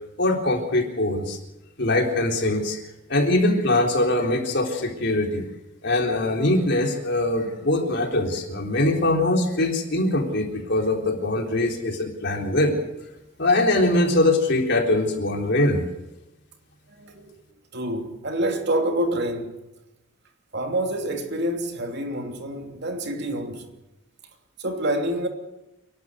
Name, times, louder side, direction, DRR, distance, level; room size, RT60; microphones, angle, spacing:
voice 1, 0.2-1.4 1.8-2.8 3.1-5.4 5.8-12.7 13.4-15.8, left 1 dB, 60° left, 3.9 m, -22 dB
voice 2, 17.0-17.3 17.7-19.5 20.5-23.7 24.6-25.3, right 1 dB, 55° right, 2.9 m, -27 dB
29.0 x 12.0 x 8.0 m
head